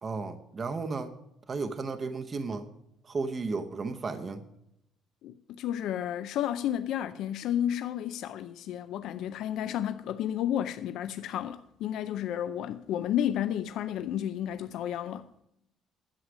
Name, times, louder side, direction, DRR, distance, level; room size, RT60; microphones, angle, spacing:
voice 1, 0.0-1.2 1.5-2.7 3.0-4.4, right 4 dB, 25° right, 0.7 m, -34 dB
voice 2, 5.2-15.3, left 10 dB, 70° left, 0.4 m, -32 dB
11.0 x 8.0 x 6.1 m
cardioid pair, 160°, 0 cm